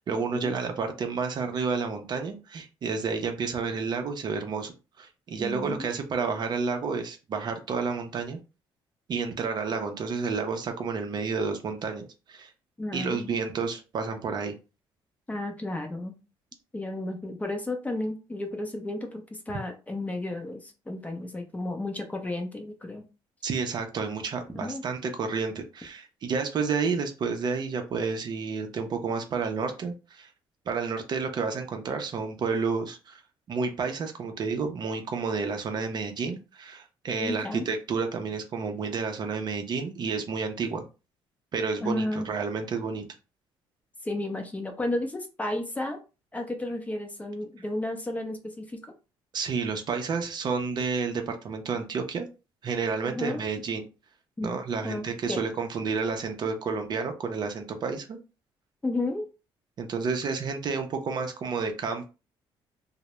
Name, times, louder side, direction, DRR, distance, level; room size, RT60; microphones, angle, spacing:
voice 1, 0.0-8.4 9.1-12.5 12.9-14.5 23.4-30.3 30.7-33.2 33.5-40.9 41.5-43.1 49.3-52.3 52.6-53.9 54.4-58.2 59.8-62.1, right 5 dB, 45° right, 5 dB, 0.5 m, -30 dB
voice 2, 5.4-5.9 12.8-13.3 15.3-16.1 16.7-23.0 24.5-24.8 37.2-37.7 41.8-42.3 44.0-46.0 46.3-48.9 53.1-53.4 54.4-54.5 54.8-55.4 58.8-59.3, left 2 dB, 15° left, 4 dB, 0.5 m, -33 dB
2.2 x 2.0 x 2.9 m, 0.30 s
cardioid pair, 100°, 10 cm